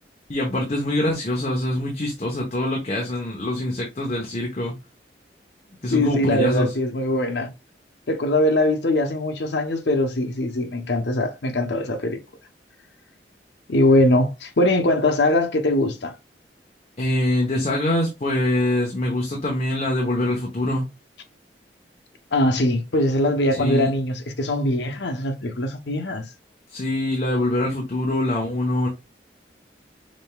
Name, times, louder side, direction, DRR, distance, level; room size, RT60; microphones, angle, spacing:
voice 1, 0.3-4.8 5.8-6.8 17.0-20.8 23.5-23.9 26.7-28.9, left 1 dB, 35° left, 0.8 m, -24 dB
voice 2, 5.9-7.5 8.1-12.2 13.7-16.1 22.3-26.3, left 1 dB, 80° left, 0.8 m, -21 dB
5.2 x 3.3 x 2.2 m
head